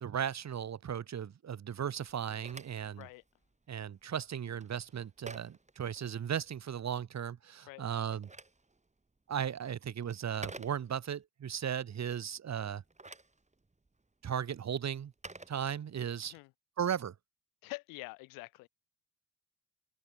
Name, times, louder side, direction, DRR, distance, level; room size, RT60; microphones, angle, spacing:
voice 1, 0.0-3.1 3.7-8.3 9.3-12.8 14.2-15.1 15.5-16.3 16.8-17.1, right 8 dB, 55° right, 2.1 m, -36 dB
Telephone, 2.1-6.6 7.8-11.2 12.7-16.3, right 2 dB, 20° right, 3.9 m, -53 dB
voice 2, 17.6-18.7, left 24 dB, 90° left, 7.5 m, -46 dB
supercardioid pair, 50°, 32 cm